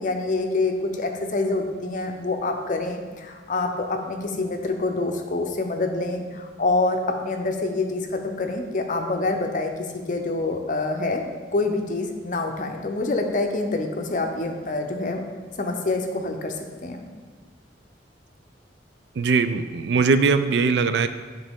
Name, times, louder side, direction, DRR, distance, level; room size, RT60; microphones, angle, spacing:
voice 1, 0.0-15.3 15.6-17.1, left 2 dB, 45° left, 4 dB, 0.6 m, -26 dB
voice 2, 19.2-21.1, right 4 dB, 65° right, 10 dB, 0.3 m, -20 dB
9.5 x 3.8 x 3.6 m, 1.4 s
head